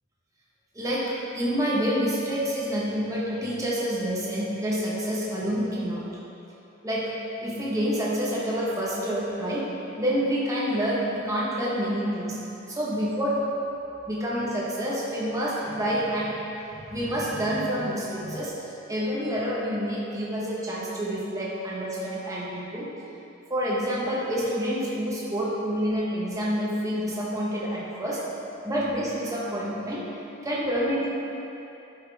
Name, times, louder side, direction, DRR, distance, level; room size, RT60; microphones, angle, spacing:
voice 1, 0.7-1.0 1.3-6.1 6.8-7.1 7.4-9.7 10.0-12.4 12.7-13.4 14.1-16.3 16.7-22.9 23.5-28.2 28.6-30.1 30.4-31.1, equal, 15° right, -6 dB, 1.3 m, -28 dB
11.0 x 5.5 x 3.6 m, 2.9 s
head